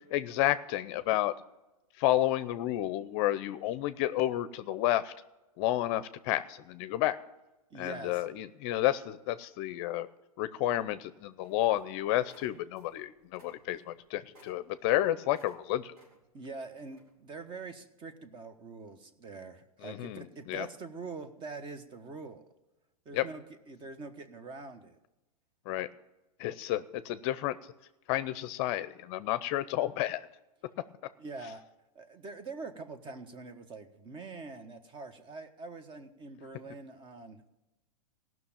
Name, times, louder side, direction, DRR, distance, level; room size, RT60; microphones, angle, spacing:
voice 1, 0.1-1.3 2.0-5.1 5.6-7.2 7.7-10.1 10.4-15.9 19.8-20.7 23.1-23.3 25.7-25.9 26.4-27.6 28.1-30.3, left 14 dB, 45° left, 14 dB, 0.6 m, -31 dB
voice 2, 7.7-8.2 16.3-22.4 23.0-25.0 31.2-31.6 31.9-37.5, right 3 dB, 25° right, 9 dB, 1.2 m, -44 dB
sound 1, 11.4-11.9 12.2-13.0 13.2-15.6 15.9-16.5 16.9-17.1, equal, 90° right, 4.0 m, -60 dB
16.0 x 6.1 x 8.7 m, 1.0 s
hypercardioid pair, 125°, 19 cm